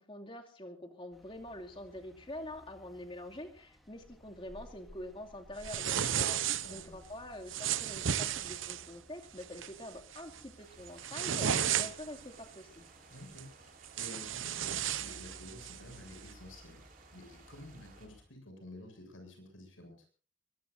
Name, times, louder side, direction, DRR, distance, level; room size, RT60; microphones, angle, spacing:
voice 1, 0.0-6.4 6.7-12.8, left 1 dB, 25° left, 3 dB, 2.5 m, -46 dB
sound 1, 1.1-18.2, equal, ahead, 3.4 m, -59 dB
sound 2, 5.6-6.8 7.5-8.9 9.4-9.7 10.1-10.4 10.8-12.2 13.4-13.5 13.8-15.8, right 9 dB, 80° right, 0.8 m, -34 dB
voice 2, 6.6-6.9 13.1-16.8 17.1-20.1, left 1 dB, 80° left, 5 dB, 7.8 m, -51 dB
sound 3, 10.6-18.1, right 4 dB, 45° right, 3.7 m, -60 dB
24.0 x 21.5 x 2.7 m, 0.36 s
head